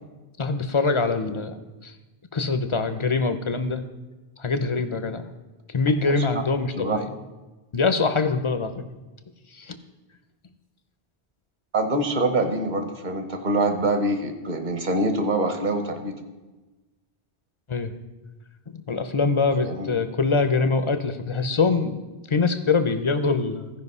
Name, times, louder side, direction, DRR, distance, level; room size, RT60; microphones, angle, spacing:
voice 1, 0.4-1.6 1.8-1.9 2.3-3.8 4.4-5.2 5.7-7.1 7.7-8.7 9.5-9.8 17.7-17.9 18.7-22.0 22.3-23.7, left 4 dB, 35° left, 10 dB, 0.5 m, -24 dB
voice 2, 11.7-16.1 19.6-19.9, right 2 dB, 45° right, 6 dB, 1.2 m, -25 dB
15.5 x 5.2 x 5.4 m, 1.2 s
omnidirectional pair, 1.1 m